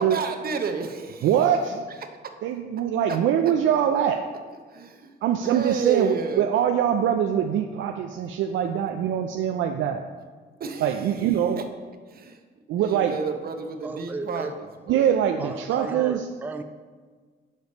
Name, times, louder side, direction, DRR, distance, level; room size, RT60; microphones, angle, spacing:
voice 1, 0.0-1.3 3.1-3.2 4.7-5.1 5.4-6.5 10.6-11.1 11.6-11.7 12.1-12.4 12.8-15.1, right 5 dB, 50° right, 6 dB, 0.7 m, -31 dB
voice 2, 1.2-1.8 2.4-4.3 5.2-10.0 10.8-11.6 12.7-13.2 14.9-16.3, right 9 dB, 75° right, 5 dB, 0.4 m, -23 dB
voice 3, 13.8-14.6 15.4-16.6, right 3 dB, 10° right, 8 dB, 0.3 m, -34 dB
6.5 x 5.0 x 4.0 m, 1.5 s
cardioid pair, 90°, 20 cm